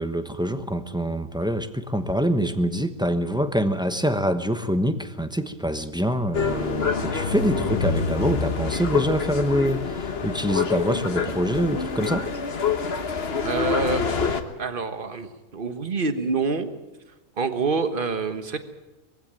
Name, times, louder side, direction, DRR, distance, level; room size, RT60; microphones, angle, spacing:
voice 1, 0.0-12.3, equal, 5° right, 9 dB, 0.8 m, -25 dB
sound 1, 6.3-14.4, left 5 dB, 45° left, 1.4 m, -26 dB
voice 2, 13.4-16.7 17.4-18.6, right 4 dB, 40° right, 9 dB, 1.4 m, -27 dB
21.5 x 15.0 x 9.1 m, 1.1 s
omnidirectional pair, 1.5 m